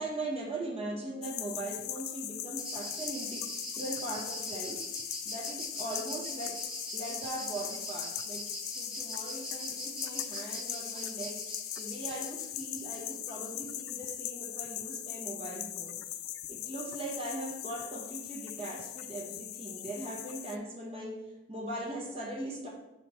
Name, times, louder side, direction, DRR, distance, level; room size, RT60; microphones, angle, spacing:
voice 1, 0.0-3.4 3.7-6.6 6.9-8.4 8.7-11.4 11.8-16.0 16.5-21.2 21.5-22.7, right 1 dB, 30° right, -2 dB, 1.3 m, -40 dB
sound 1, 1.2-20.6, left 12 dB, 90° left, 0.4 m, -40 dB
sound 2, 2.6-13.5, equal, 5° right, 0.8 m, -42 dB
5.6 x 4.1 x 4.5 m, 0.99 s
head